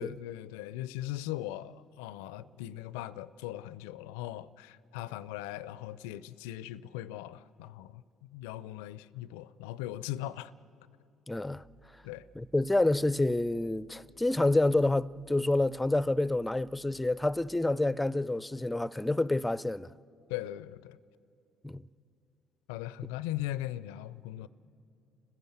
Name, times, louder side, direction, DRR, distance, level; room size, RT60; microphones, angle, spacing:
voice 1, 0.0-10.5 12.0-12.3 20.3-21.0 22.7-24.5, left 14 dB, 75° left, 0.4 m, -39 dB
voice 2, 11.3-11.6 12.4-19.9 21.6-21.8, left 2 dB, 10° left, 0.5 m, -28 dB
sound 1, 11.4-17.3, left 1 dB, 70° right, 4.4 m, -63 dB
29.5 x 15.5 x 8.0 m
hypercardioid pair, 50°, 0 cm